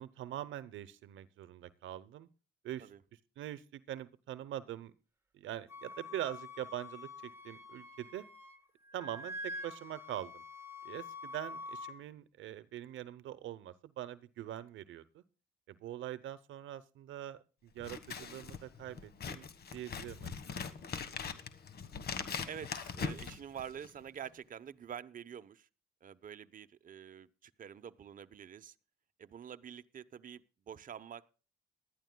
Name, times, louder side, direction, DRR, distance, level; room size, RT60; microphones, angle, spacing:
voice 1, 0.0-2.3 2.6-4.9 5.3-8.2 8.9-10.4 10.8-15.2 15.7-20.3, right 12 dB, 80° right, 16 dB, 0.8 m, -43 dB
Wind instrument woodwind instrument, 5.7-8.6 8.9-11.9, left 2 dB, 10° right, 1.7 m, -46 dB
Scissors, 17.8-24.0, left 6 dB, 55° left, 1.4 m, -41 dB
voice 2, 22.5-25.7 26.0-28.7 29.2-31.3, right 8 dB, 45° right, 11 dB, 0.8 m, -47 dB
19.5 x 12.0 x 2.2 m, 0.36 s
cardioid pair, 90°, 20 cm